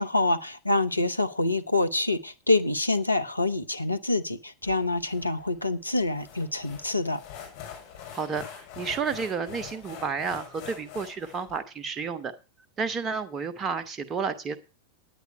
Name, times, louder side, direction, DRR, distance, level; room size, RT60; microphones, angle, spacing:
voice 1, 0.0-7.2, left 2 dB, 85° left, 0.8 m, -26 dB
sound 1, 4.6-11.6, left 8 dB, 50° left, 6.0 m, -44 dB
voice 2, 8.1-12.3 12.8-14.6, right 5 dB, 25° right, 1.2 m, -31 dB
10.0 x 9.7 x 5.5 m
figure-of-eight pair, 90°, 0 cm